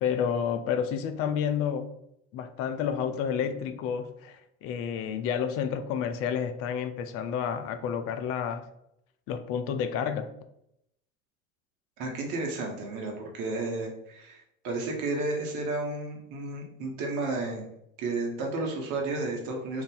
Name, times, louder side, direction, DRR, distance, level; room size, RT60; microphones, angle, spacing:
voice 1, 0.0-1.9 2.3-8.7 9.3-10.3, left 7 dB, 35° left, 9 dB, 0.4 m, -30 dB
voice 2, 12.0-17.7 18.0-19.8, right 2 dB, 50° right, 0 dB, 1.1 m, -32 dB
2.6 x 2.5 x 3.7 m, 0.78 s
figure-of-eight pair, 70°, 40 cm